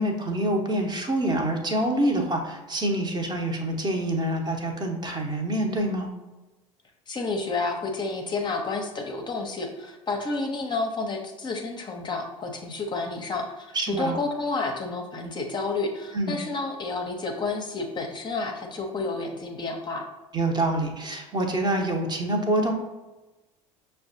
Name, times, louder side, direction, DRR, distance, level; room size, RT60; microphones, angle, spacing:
voice 1, 0.0-6.1 13.7-14.2 16.1-16.3 20.3-22.7, right 1 dB, 25° right, 2 dB, 0.8 m, -26 dB
voice 2, 7.1-20.1, left 3 dB, 25° left, 2 dB, 0.6 m, -30 dB
6.0 x 2.2 x 2.6 m, 1.1 s
figure-of-eight pair, 65°, 17 cm